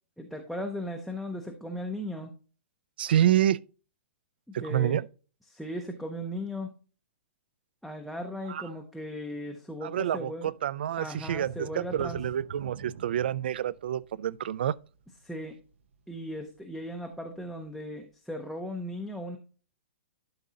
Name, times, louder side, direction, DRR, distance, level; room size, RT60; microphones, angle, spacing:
voice 1, 0.2-2.3 4.6-5.0 5.5-6.7 7.8-10.5 11.0-12.2 15.2-15.6 16.1-19.4, equal, ahead, 0.5 m, -37 dB
voice 2, 3.0-3.6 4.5-5.1 8.5-8.6 9.8-14.7, right 11 dB, 55° right, 0.4 m, -28 dB
sound 1, 11.1-16.6 17.0-17.1 17.6-17.7, right 5 dB, 90° right, 0.9 m, -44 dB
12.0 x 5.1 x 2.8 m
hypercardioid pair, 180°, 7 cm